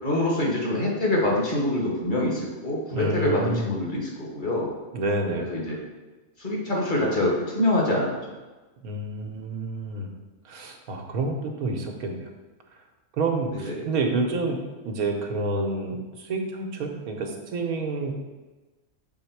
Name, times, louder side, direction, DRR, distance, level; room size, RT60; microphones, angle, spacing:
voice 1, 0.0-4.7 5.4-5.8 6.4-8.1 13.5-13.8, left 1 dB, 35° left, -3 dB, 1.5 m, -25 dB
voice 2, 2.9-3.7 4.9-5.5 8.8-10.1 10.5-12.2 13.2-18.1, right 2 dB, 85° right, 2 dB, 1.3 m, -28 dB
6.6 x 3.7 x 4.6 m, 1.2 s
omnidirectional pair, 1.5 m